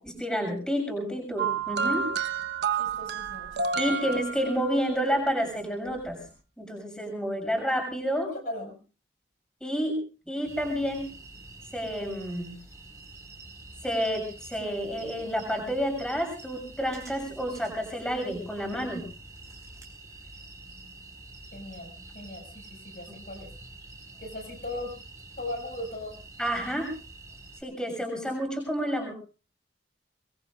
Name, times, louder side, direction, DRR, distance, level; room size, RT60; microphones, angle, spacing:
voice 1, 0.0-2.1 3.7-6.2 6.6-8.3 9.6-10.0 10.3-11.1 11.7-12.6 13.8-19.0 26.4-26.9 27.6-29.1, equal, 5° left, 2 dB, 6.8 m, -29 dB
sound 1, 1.4-4.9 6.0-6.1, right 5 dB, 70° right, 1.2 m, -30 dB
voice 2, 2.7-3.5 3.7-4.2 8.3-8.8 21.5-23.5 24.2-25.0 25.4-26.1, left 1 dB, 55° left, 2 dB, 6.1 m, -38 dB
sound 2, 10.4-27.6, right 2 dB, 20° right, 4.9 m, -47 dB
25.0 x 22.0 x 2.5 m, 0.36 s
head